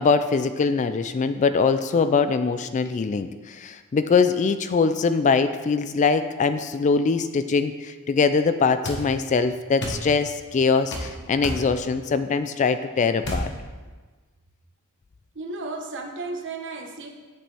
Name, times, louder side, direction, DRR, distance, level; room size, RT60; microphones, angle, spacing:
voice 1, 0.0-13.5, left 5 dB, 35° left, 11 dB, 0.3 m, -22 dB
sound 1, 8.8-9.0 9.8-10.0 10.9-11.1 11.4-11.7 13.2-13.5, equal, 50° left, 1.3 m, -29 dB
voice 2, 15.3-17.1, right 3 dB, 55° right, 3 dB, 1.1 m, -34 dB
8.7 x 7.6 x 3.4 m, 1.4 s
head